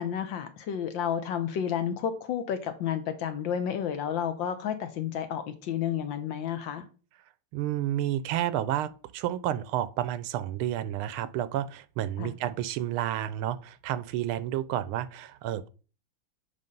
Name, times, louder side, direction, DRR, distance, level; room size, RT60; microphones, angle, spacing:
voice 1, 0.0-6.8 12.2-12.3, left 8 dB, 65° left, 1.4 m, -31 dB
voice 2, 7.5-15.7, right 12 dB, 80° right, 1.4 m, -30 dB
8.4 x 3.5 x 5.2 m
omnidirectional pair, 2.4 m